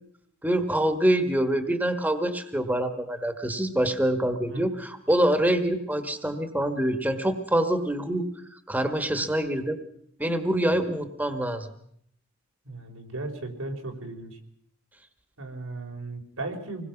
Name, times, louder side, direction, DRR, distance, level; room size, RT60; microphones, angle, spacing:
voice 1, 0.4-8.2 8.7-9.8 10.2-11.7, right 1 dB, 10° right, 7 dB, 1.5 m, -25 dB
voice 2, 12.6-14.4 15.4-16.9, right 2 dB, 85° right, 4 dB, 4.1 m, -36 dB
26.5 x 20.5 x 5.9 m, 0.69 s
head